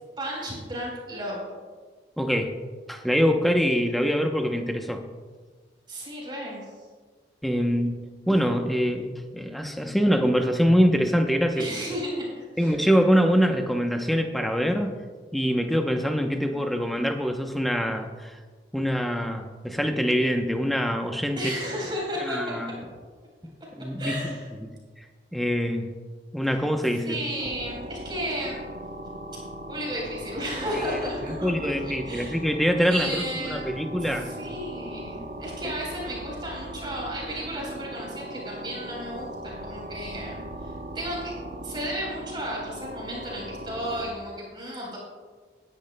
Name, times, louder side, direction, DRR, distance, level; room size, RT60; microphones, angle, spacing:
voice 1, 0.2-1.4 5.9-6.7 11.6-12.8 21.4-22.6 24.0-24.5 26.4-26.5 27.0-28.6 29.7-32.4 32.8-41.3 41.6-45.0, equal, 25° right, -3 dB, 3.8 m, -33 dB
voice 2, 2.2-2.6 2.9-5.0 7.4-11.7 12.6-14.9 15.3-18.4 18.7-21.6 22.3-22.7 23.8-24.2 24.6-24.7 25.3-25.9 26.3-27.2 30.7-30.8 31.4-34.3 35.6-35.7, equal, ahead, 4 dB, 0.7 m, -24 dB
sound 1, 27.4-44.1, right 1 dB, 40° right, 0.9 m, -39 dB
18.5 x 10.5 x 2.2 m, 1.4 s
head